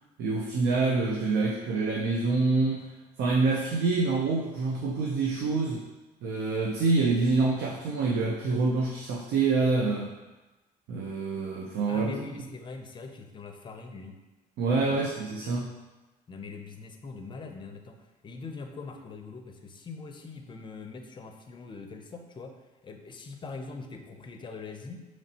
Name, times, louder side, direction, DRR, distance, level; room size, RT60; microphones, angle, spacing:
voice 1, 0.2-2.9 3.2-5.9 6.2-10.1 10.9-12.2 14.6-15.8, right 3 dB, 75° right, -1 dB, 0.5 m, -26 dB
voice 2, 11.9-14.2 14.9-15.1 15.4-15.6 16.3-25.1, left 4 dB, 30° left, 4 dB, 0.5 m, -42 dB
5.1 x 3.1 x 2.8 m, 1.1 s
cardioid pair, 110°, 17 cm